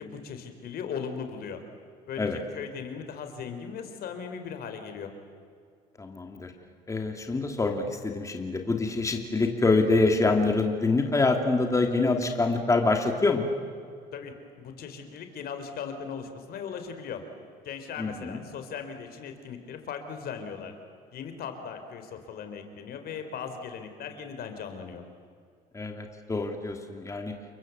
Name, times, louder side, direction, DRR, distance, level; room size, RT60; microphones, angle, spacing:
voice 1, 0.0-1.6 2.1-5.1 14.1-17.2 17.6-20.7 21.1-25.0, left 6 dB, 65° left, 7 dB, 4.0 m, -38 dB
voice 2, 6.0-6.5 6.9-13.5 18.0-18.4 25.7-27.3, left 3 dB, 20° left, 4 dB, 2.8 m, -25 dB
29.5 x 22.5 x 8.1 m, 2.2 s
cardioid pair, 110°, 17 cm